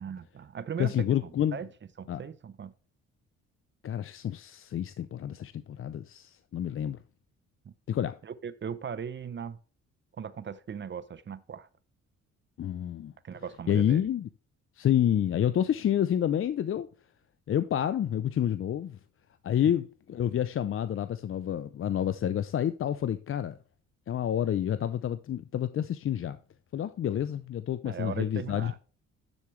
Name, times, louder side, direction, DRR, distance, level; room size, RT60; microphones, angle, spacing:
voice 1, 0.0-1.7 2.0-2.7 8.2-9.6 10.2-11.7 13.2-14.1 27.8-28.8, right 7 dB, 40° right, 0.7 m, -38 dB
voice 2, 0.8-1.6 2.1-2.2 3.8-7.0 7.9-8.2 12.6-13.1 13.7-14.3 14.8-16.9 17.5-19.0 19.4-23.6 24.1-26.4 26.7-28.8, left 10 dB, 45° left, 0.5 m, -29 dB
11.5 x 6.9 x 3.2 m
cardioid pair, 90°, 30 cm